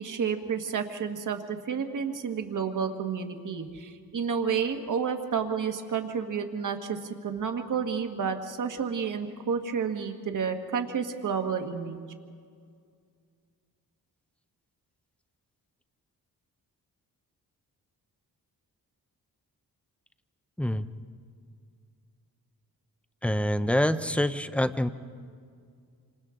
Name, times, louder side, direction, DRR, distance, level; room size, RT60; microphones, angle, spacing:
voice 1, 0.0-12.0, right 6 dB, 55° right, 5 dB, 1.5 m, -30 dB
voice 2, 23.2-24.9, left 1 dB, 5° left, 11 dB, 0.5 m, -26 dB
28.5 x 26.0 x 3.7 m, 2.2 s
wide cardioid pair, 155°, 36 cm